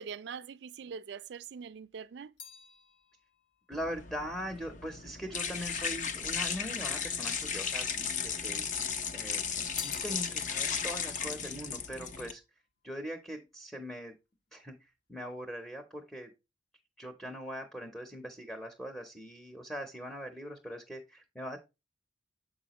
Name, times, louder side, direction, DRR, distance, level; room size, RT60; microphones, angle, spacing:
voice 1, 0.0-2.3, right 6 dB, 65° right, 0.3 m, -43 dB
sound 1, 1.4-5.8 6.6-7.4 7.7-8.8 9.2-12.7 13.0-13.5, left 6 dB, 75° left, 1.0 m, -52 dB
sound 2, 3.7-12.3, left 6 dB, 45° left, 0.6 m, -35 dB
voice 2, 3.7-8.6 9.1-12.4 12.8-14.1 14.5-16.3 17.0-21.6, equal, ahead, 0.7 m, -41 dB
7.2 x 4.9 x 2.9 m
head